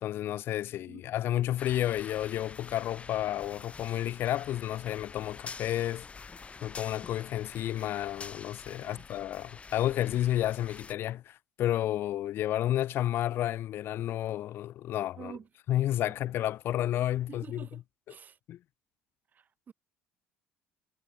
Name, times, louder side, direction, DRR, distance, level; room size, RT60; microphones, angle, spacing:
voice 1, 0.0-6.1 6.6-15.4 15.7-17.8 18.1-18.2 18.5-18.6, left 13 dB, 60° left, 2.5 m, -31 dB
sound 1, 1.6-10.9, left 4 dB, 30° left, 2.0 m, -47 dB
voice 2, 8.7-9.1 15.2-15.5 16.0-16.1 17.3-17.8 18.1-18.4 19.4-19.7, right 7 dB, 40° right, 3.8 m, -47 dB
hypercardioid pair, 65°, 4 cm